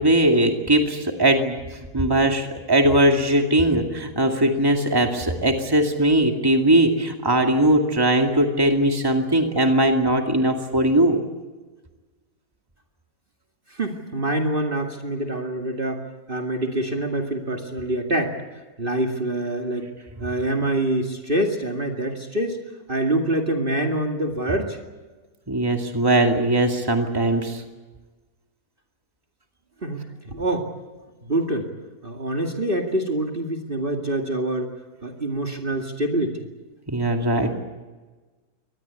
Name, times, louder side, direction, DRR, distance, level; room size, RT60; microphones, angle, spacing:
voice 1, 0.0-11.2 25.5-27.6 36.9-37.5, right 1 dB, 15° right, 3 dB, 2.3 m, -20 dB
voice 2, 13.7-18.4 18.8-19.9 20.2-22.6 22.9-24.8 29.8-30.7 31.2-31.7 32.0-34.7 35.0-36.4, right 1 dB, 35° right, 3 dB, 2.3 m, -25 dB
24.0 x 20.0 x 8.3 m, 1.3 s
omnidirectional pair, 1.6 m